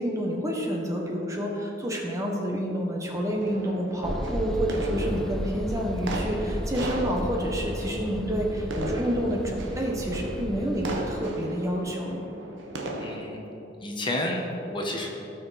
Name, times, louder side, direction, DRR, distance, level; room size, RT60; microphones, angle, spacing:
voice 1, 0.0-12.2, equal, 15° right, -1 dB, 1.2 m, -29 dB
sound 1, 3.0-13.3, right 1 dB, 75° right, 1.2 m, -36 dB
sound 2, 4.0-11.2, equal, ahead, 0.4 m, -34 dB
voice 2, 13.0-13.4 13.8-15.1, left 1 dB, 25° left, 0 dB, 1.3 m, -30 dB
17.5 x 6.0 x 4.2 m, 3.0 s
head